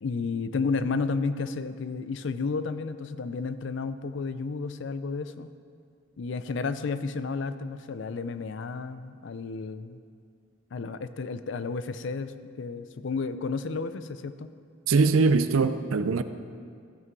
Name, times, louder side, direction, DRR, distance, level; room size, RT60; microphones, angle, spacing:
voice 1, 0.0-5.5 6.2-10.0 10.7-14.5, left 4 dB, 60° left, 12 dB, 0.4 m, -32 dB
voice 2, 14.9-16.2, right 4 dB, 85° right, 11 dB, 0.5 m, -22 dB
15.5 x 6.0 x 4.6 m, 2.2 s
head